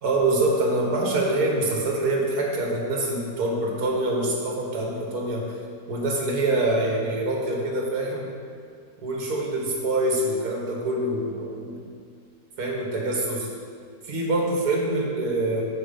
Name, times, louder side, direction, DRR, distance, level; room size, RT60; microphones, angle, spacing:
voice 1, 0.0-5.6 5.9-8.3 9.0-11.8 12.6-13.5 14.0-15.6, right 2 dB, 85° right, -1 dB, 1.8 m, -25 dB
8.5 x 4.6 x 5.1 m, 2.3 s
omnidirectional pair, 1.6 m